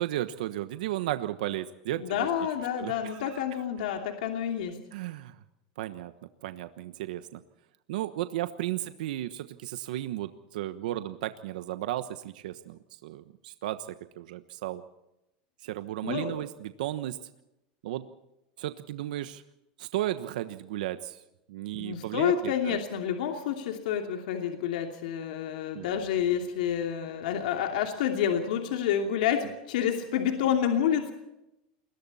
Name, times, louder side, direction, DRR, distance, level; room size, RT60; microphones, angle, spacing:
voice 1, 0.0-2.3 2.8-3.4 4.9-5.4 5.8-6.1 6.4-7.4 7.9-13.9 14.2-14.8 15.6-17.2 17.8-18.0 18.6-19.4 19.8-21.2 21.5-22.8 25.7-26.0, right 14 dB, 80° right, 10 dB, 1.2 m, -34 dB
voice 2, 2.0-4.8 16.0-16.4 21.8-31.1, left 9 dB, 80° left, 3 dB, 2.8 m, -29 dB
28.5 x 21.5 x 4.3 m, 0.89 s
supercardioid pair, 120°, 4 cm